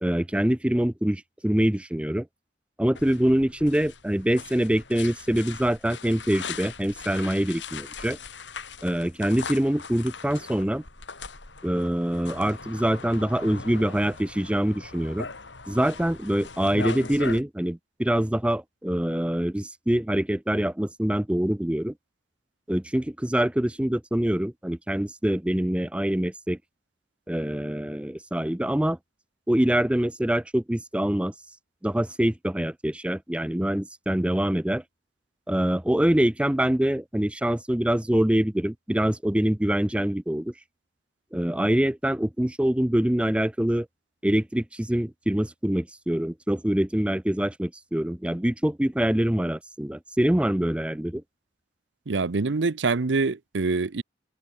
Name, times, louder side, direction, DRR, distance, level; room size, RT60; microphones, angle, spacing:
voice 1, 0.0-2.3 2.8-8.2 8.8-10.8 11.6-15.3 15.7-21.9 22.7-26.6 27.3-29.0 29.5-31.3 31.8-34.8 35.5-40.5 41.3-43.9 44.2-51.2, right 1 dB, 5° right, 0.5 m, -25 dB
sound 1, 2.9-17.4, left 4 dB, 75° left, 4.2 m, -40 dB
voice 2, 52.1-54.0, right 3 dB, 75° right, 0.7 m, -25 dB
head